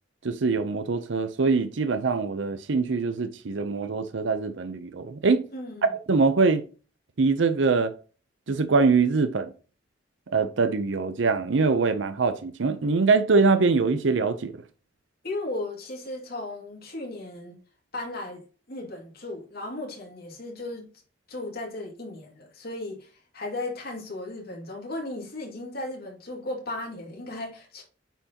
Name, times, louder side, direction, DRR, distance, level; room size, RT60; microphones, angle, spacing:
voice 1, 0.2-5.4 5.9-6.6 7.2-7.9 8.5-9.5 10.3-14.5, right 4 dB, 90° right, 0.6 m, -23 dB
voice 2, 5.5-5.9 15.2-17.6 17.9-18.4 18.7-20.9 21.3-27.8, left 2 dB, 55° left, 2.3 m, -36 dB
8.9 x 4.6 x 2.9 m
head